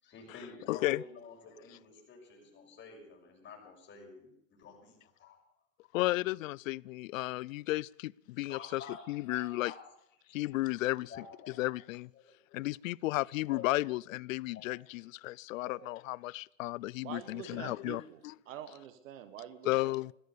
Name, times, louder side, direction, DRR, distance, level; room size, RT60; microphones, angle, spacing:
voice 1, 0.0-4.3 4.6-5.4 8.5-9.8 11.1-11.7 12.1-12.2 13.5-13.6 14.5-15.0 15.6-16.1, left 5 dB, 30° left, 6.4 m, -50 dB
voice 2, 0.7-1.0 5.9-9.7 10.3-11.2 11.6-12.1 12.5-18.3 19.7-20.1, left 19 dB, 85° left, 0.5 m, -34 dB
voice 3, 17.0-19.9, right 10 dB, 80° right, 1.4 m, -46 dB
15.0 x 14.5 x 6.8 m
supercardioid pair, 120°, 39 cm